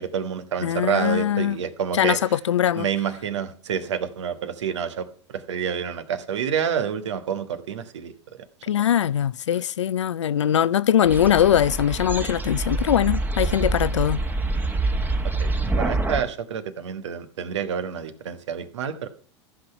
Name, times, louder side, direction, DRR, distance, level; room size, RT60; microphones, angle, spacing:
voice 1, 0.0-2.4 2.7-8.1 15.4-19.1, right 7 dB, 80° right, 1.4 m, -28 dB
voice 2, 0.6-1.6 1.9-2.9 8.7-14.2, left 10 dB, 85° left, 0.5 m, -21 dB
sound 1, 11.1-16.2, right 2 dB, 10° right, 1.2 m, -26 dB
14.5 x 6.1 x 5.7 m
hypercardioid pair, 105°, 15 cm